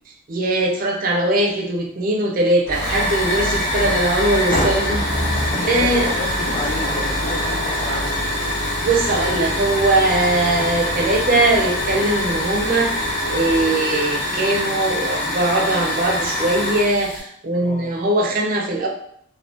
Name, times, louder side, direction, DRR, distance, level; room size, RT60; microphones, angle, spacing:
voice 1, 0.3-5.2 5.5-6.1 6.4-6.5 8.8-18.9, right 2 dB, 40° right, 0 dB, 0.4 m, -20 dB
sound 1, 2.6-13.7, equal, 75° left, 1.1 m, -30 dB
Hiss / Fire, 2.7-17.2, left 1 dB, 55° left, 0.9 m, -24 dB
voice 2, 3.3-4.0 5.5-8.3 17.6-17.9, left 2 dB, 30° left, 0 dB, 0.3 m, -32 dB
Wind instrument woodwind instrument, 4.5-14.3, left 3 dB, 85° right, 0.8 m, -37 dB
3.3 x 2.1 x 2.5 m, 0.67 s
head